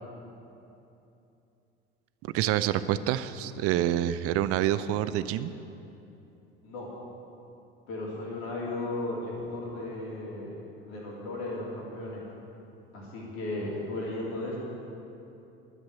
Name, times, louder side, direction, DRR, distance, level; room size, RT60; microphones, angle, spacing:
voice 1, 2.3-5.5, right 12 dB, 50° right, 14 dB, 0.6 m, -27 dB
voice 2, 7.9-10.6 10.9-12.2 12.9-14.6, left 2 dB, 65° left, -5 dB, 3.2 m, -35 dB
11.5 x 7.6 x 9.7 m, 2.8 s
figure-of-eight pair, 60°, 31 cm